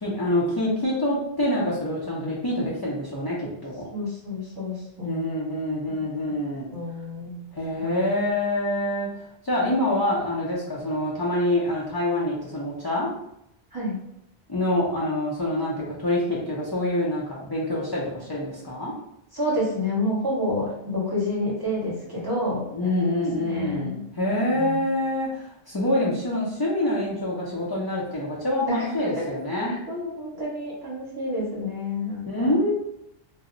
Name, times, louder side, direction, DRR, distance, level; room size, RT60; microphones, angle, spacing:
voice 1, 0.0-3.9 5.0-6.7 7.5-9.1 9.4-13.1 14.5-18.9 22.7-29.8 32.3-32.7, left 1 dB, 30° left, -7 dB, 0.5 m, -26 dB
voice 2, 3.9-5.2 5.9-6.0 6.7-7.4 7.8-8.1 13.7-14.0 19.3-24.0 24.5-24.9 28.7-28.9 29.6-32.5, left 1 dB, 25° right, -7 dB, 0.9 m, -29 dB
2.2 x 2.0 x 3.7 m, 0.81 s
omnidirectional pair, 1.1 m